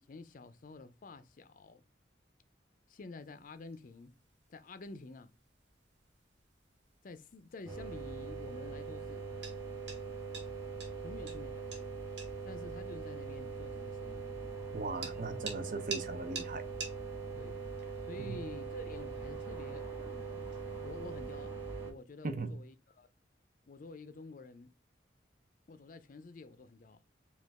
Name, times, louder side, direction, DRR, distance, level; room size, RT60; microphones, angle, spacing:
voice 1, 0.1-1.8 2.9-4.1 4.5-5.3 7.0-9.3 11.0-12.0 12.4-14.3 17.4-17.6 18.1-19.9 20.8-21.5 21.8-23.1 23.7-24.7 25.7-27.0, left 3 dB, 50° left, 0.5 m, -49 dB
sound 1, 3.2-21.5, right 4 dB, 75° right, 1.4 m, -51 dB
sound 2, 7.7-21.9, right 4 dB, 15° right, 1.5 m, -42 dB
voice 2, 14.7-16.7 18.2-18.4 22.2-22.6, right 3 dB, 50° right, 0.6 m, -39 dB
5.1 x 2.4 x 3.4 m
head